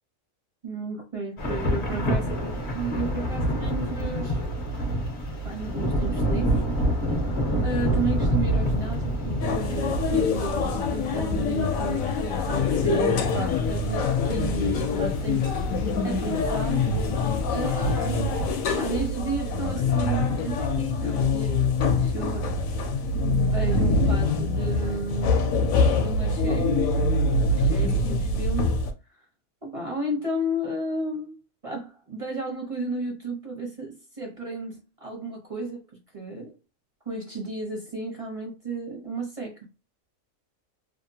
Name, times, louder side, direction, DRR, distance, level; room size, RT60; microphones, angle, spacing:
voice 1, 0.6-4.4 5.4-6.6 7.6-16.9 17.5-18.4 18.8-22.5 23.3-25.6 25.9-27.1 27.4-28.8 29.6-35.8 36.1-36.5 37.1-39.6, right 2 dB, 40° right, 0.5 m, -33 dB
Thunder / Rain, 1.4-19.1, equal, 45° left, 0.7 m, -29 dB
sound 1, 9.4-28.9, left 3 dB, 75° left, 1.0 m, -25 dB
2.8 x 2.0 x 2.7 m
omnidirectional pair, 1.5 m